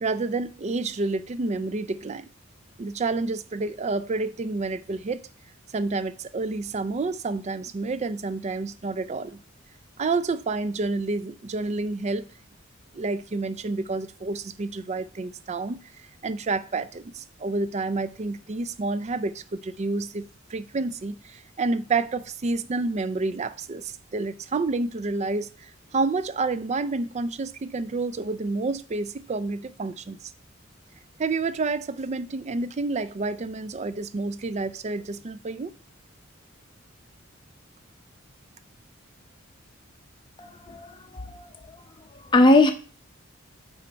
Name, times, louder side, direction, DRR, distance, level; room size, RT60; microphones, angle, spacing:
voice 1, 0.0-2.3 2.8-5.2 5.7-9.4 10.0-12.3 12.9-15.8 16.2-30.2 31.2-35.7, right 3 dB, 35° right, 0.4 m, -29 dB
voice 2, 40.4-41.8 42.3-42.7, left 2 dB, 25° left, 0.6 m, -21 dB
8.4 x 3.2 x 5.2 m
head